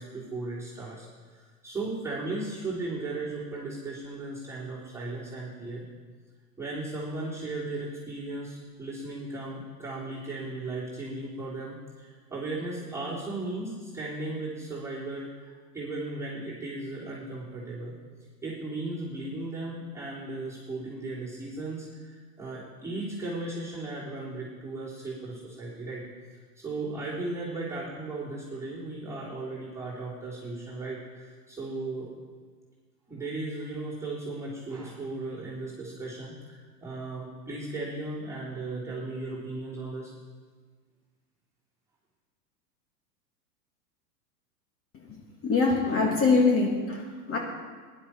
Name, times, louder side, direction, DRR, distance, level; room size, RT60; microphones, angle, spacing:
voice 1, 0.0-5.9 6.6-18.0 18.4-26.1 26.3-32.1 33.1-40.1, right 2 dB, 5° right, -9 dB, 3.4 m, -36 dB
voice 2, 45.4-47.4, left 4 dB, 25° left, 0 dB, 2.0 m, -24 dB
18.5 x 11.0 x 4.4 m, 1.5 s
figure-of-eight pair, 95°, 49 cm